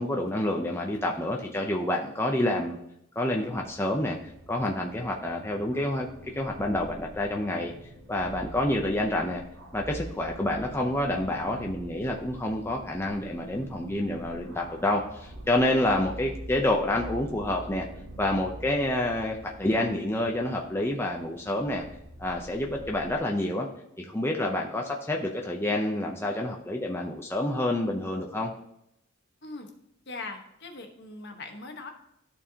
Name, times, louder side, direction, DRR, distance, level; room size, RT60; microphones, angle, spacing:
voice 1, 0.0-2.8 3.2-4.2 4.5-6.1 6.4-7.7 8.1-9.4 9.7-17.9 18.2-21.8 22.2-23.7 24.0-28.5, left 1 dB, 10° left, 0 dB, 0.7 m, -28 dB
sound 1, 3.5-23.2, right 1 dB, 85° right, 2.6 m, -45 dB
voice 2, 15.8-16.1 29.4-29.7 30.1-31.9, left 3 dB, 55° left, 4 dB, 1.2 m, -41 dB
13.5 x 4.6 x 2.9 m, 0.77 s
head